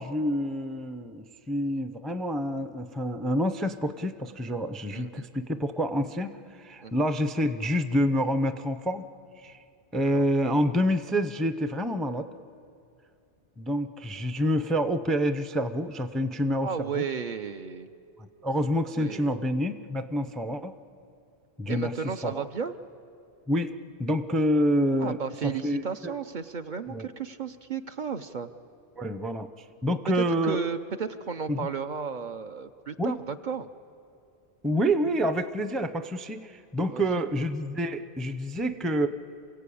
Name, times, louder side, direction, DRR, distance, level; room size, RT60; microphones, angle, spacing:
voice 1, 0.0-9.0 9.4-9.6 9.9-12.3 13.6-17.0 18.4-20.7 21.6-21.9 22.2-22.4 23.5-23.7 24.0-25.2 25.6-26.1 26.9-27.1 29.0-29.5 29.8-30.6 31.5-31.7 33.0-33.2 34.6-39.1, equal, ahead, 10 dB, 0.5 m, -27 dB
voice 2, 4.9-5.3 6.8-6.9 10.1-10.3 16.6-17.9 18.9-19.4 21.7-22.7 25.0-28.5 30.1-33.7 36.9-37.2, right 6 dB, 50° right, 8 dB, 0.8 m, -34 dB
28.5 x 16.0 x 8.5 m, 2.5 s
omnidirectional pair, 1.1 m